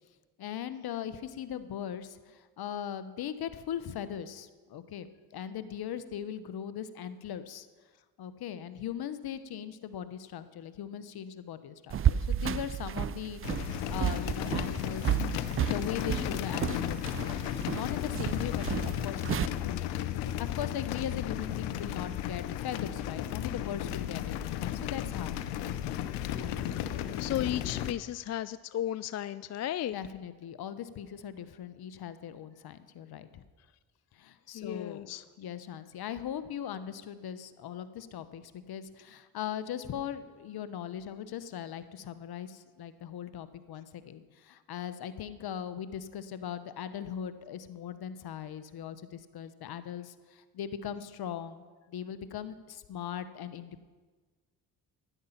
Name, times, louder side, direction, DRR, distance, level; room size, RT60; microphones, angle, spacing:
voice 1, 0.4-5.1 5.3-7.7 8.2-15.2 15.7-17.4 17.7-25.4 29.9-33.4 34.1-53.8, left 9 dB, 60° left, 12 dB, 1.0 m, -39 dB
sound 1, 11.9-19.5, right 9 dB, 35° right, 0.4 m, -32 dB
sound 2, 13.4-27.9, left 11 dB, 90° left, 0.7 m, -34 dB
voice 2, 26.7-29.9 34.5-35.2, left 12 dB, 40° left, 15 dB, 0.4 m, -35 dB
12.0 x 10.0 x 5.8 m, 1.3 s
supercardioid pair, 55°, 41 cm